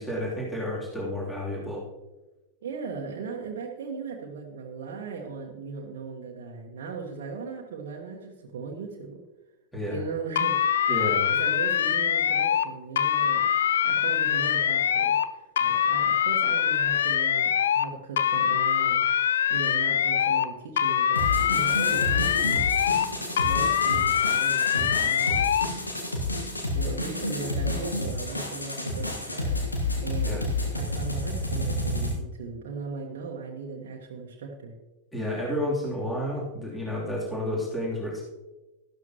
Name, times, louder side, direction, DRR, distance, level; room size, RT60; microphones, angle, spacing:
voice 1, 0.0-1.8 9.7-10.0 10.9-11.3 30.2-30.4 35.1-38.2, left 1 dB, 10° left, -5 dB, 3.1 m, -31 dB
voice 2, 2.6-9.2 9.9-10.6 11.3-13.4 13.8-19.0 19.5-22.6 23.2-25.5 26.7-29.6 30.0-34.7, right 5 dB, 55° right, -1 dB, 1.3 m, -38 dB
sound 1, 10.4-12.7 13.0-15.3 15.6-17.9 18.2-20.5 20.8-23.1 23.4-25.7, left 9 dB, 60° left, 0.5 m, -24 dB
sound 2, 21.2-32.1, left 1 dB, 80° left, 1.5 m, -30 dB
13.0 x 12.0 x 2.9 m, 1.1 s
figure-of-eight pair, 90°, 0 cm